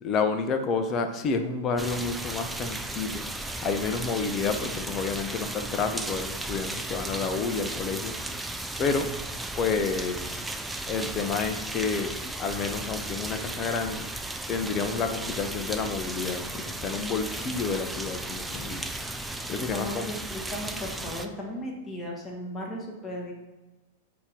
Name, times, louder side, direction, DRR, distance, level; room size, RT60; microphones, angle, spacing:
voice 1, 0.0-3.3 3.6-8.1 8.8-9.1 9.6-10.5 10.9-12.1 12.4-14.1 14.5-18.9 19.5-20.1, left 4 dB, 30° left, 7 dB, 0.8 m, -29 dB
sound 1, 1.8-21.3, right 2 dB, 5° right, 0.5 m, -35 dB
voice 2, 19.7-23.3, left 1 dB, 10° left, -3 dB, 1.7 m, -36 dB
8.5 x 3.0 x 5.1 m, 1.1 s
figure-of-eight pair, 95°, 0 cm